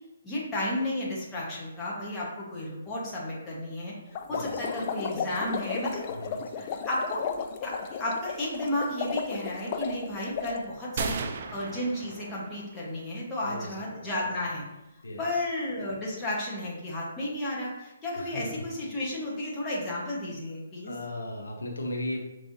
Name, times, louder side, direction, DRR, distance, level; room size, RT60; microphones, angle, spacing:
voice 1, 0.2-3.9 4.3-6.0 6.6-7.2 7.6-11.2 11.5-14.6 15.2-20.9, left 1 dB, 15° left, -6 dB, 1.3 m, -33 dB
sound 1, 4.1-10.6, left 6 dB, 35° left, 0.4 m, -34 dB
voice 2, 4.3-4.6 6.1-6.4 13.4-14.0 15.0-15.4 18.1-18.5 20.8-22.2, left 1 dB, 85° left, 0 dB, 1.1 m, -36 dB
sound 2, 11.0-12.8, right 5 dB, 45° right, 0.4 m, -35 dB
5.4 x 3.3 x 2.7 m, 0.95 s
hypercardioid pair, 145°, 0 cm